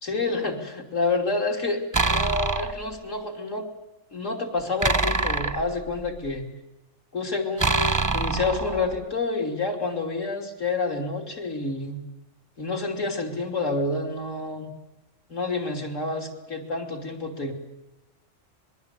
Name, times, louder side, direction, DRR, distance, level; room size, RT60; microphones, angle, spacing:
voice 1, 0.0-3.7 4.1-6.5 7.1-12.0 12.6-14.7 15.3-17.5, left 3 dB, 70° left, 1 dB, 3.5 m, -28 dB
sound 1, 1.9-2.8 4.8-6.3 7.6-9.0, right 3 dB, 20° right, 0.6 m, -25 dB
26.0 x 21.5 x 8.3 m, 1.0 s
omnidirectional pair, 1.4 m